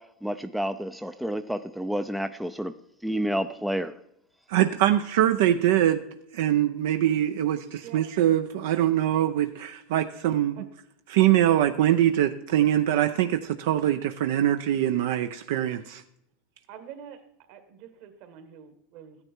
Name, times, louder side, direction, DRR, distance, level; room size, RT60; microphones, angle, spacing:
voice 1, 0.2-2.7 3.0-4.0, equal, ahead, 0.4 m, -29 dB
voice 2, 4.5-6.0 6.3-10.6 11.1-16.0, right 12 dB, 75° right, 0.6 m, -23 dB
voice 3, 16.7-17.2 17.5-19.2, right 9 dB, 55° right, 1.7 m, -45 dB
14.0 x 9.7 x 4.5 m
supercardioid pair, 145°, 0 cm